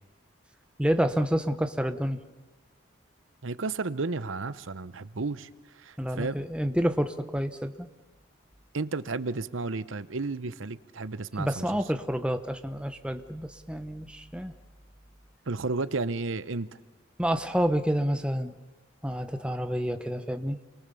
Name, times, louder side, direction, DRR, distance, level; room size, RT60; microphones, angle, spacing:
voice 1, 0.8-2.2 6.0-7.9 11.4-14.5 17.2-18.5 19.0-20.6, equal, 5° right, 8 dB, 1.0 m, -28 dB
voice 2, 3.4-6.4 8.7-11.5 15.5-16.7, right 3 dB, 80° right, 15 dB, 0.9 m, -32 dB
28.0 x 23.5 x 7.0 m, 1.3 s
head